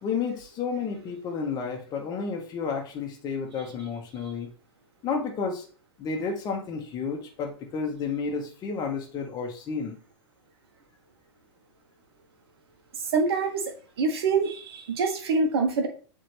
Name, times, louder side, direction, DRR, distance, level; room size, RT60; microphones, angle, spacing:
voice 1, 0.0-4.5 5.0-5.6 6.0-10.0, left 5 dB, 30° left, 2 dB, 1.6 m, -31 dB
voice 2, 13.1-13.6 14.0-15.9, right 4 dB, 60° right, 4 dB, 1.5 m, -25 dB
7.5 x 3.8 x 3.4 m, 0.40 s
figure-of-eight pair, 100°, 14 cm